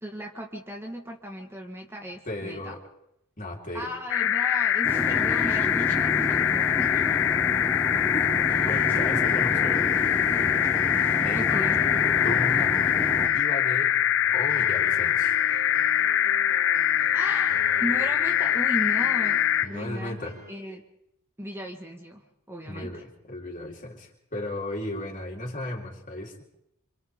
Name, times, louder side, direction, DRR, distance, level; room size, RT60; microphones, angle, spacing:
voice 1, 0.0-2.7 3.7-7.3 11.3-11.8 17.1-17.5 17.8-20.2 20.5-20.8 21.4-23.0, equal, 10° right, 1 dB, 1.7 m, -36 dB
voice 2, 2.3-2.8 3.4-3.9 7.9-8.3 8.6-9.9 11.2-11.6 12.2-12.8 13.3-14.0 14.3-15.4 19.6-20.4 22.7-26.4, left 1 dB, 35° left, -1 dB, 4.1 m, -35 dB
sound 1, 4.1-19.7, left 11 dB, 60° left, 0.7 m, -23 dB
sound 2, 4.8-13.3, equal, 10° left, 3.1 m, -31 dB
sound 3, 8.5-20.5, right 1 dB, 80° right, 5.2 m, -43 dB
28.0 x 26.0 x 3.8 m, 0.80 s
head